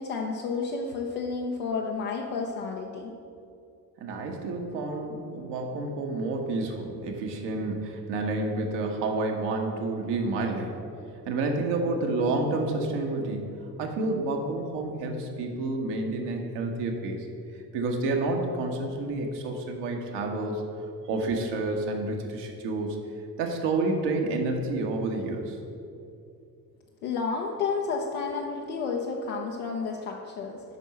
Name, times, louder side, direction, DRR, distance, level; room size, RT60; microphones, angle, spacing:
voice 1, 0.0-3.1 27.0-30.6, left 4 dB, 65° left, 0 dB, 0.8 m, -31 dB
voice 2, 4.0-10.7 11.3-13.5 13.8-17.3 17.5-20.6 21.1-23.0 23.4-25.6, right 2 dB, 60° right, 2 dB, 1.2 m, -29 dB
8.1 x 5.4 x 5.9 m, 2.6 s
figure-of-eight pair, 40°, 48 cm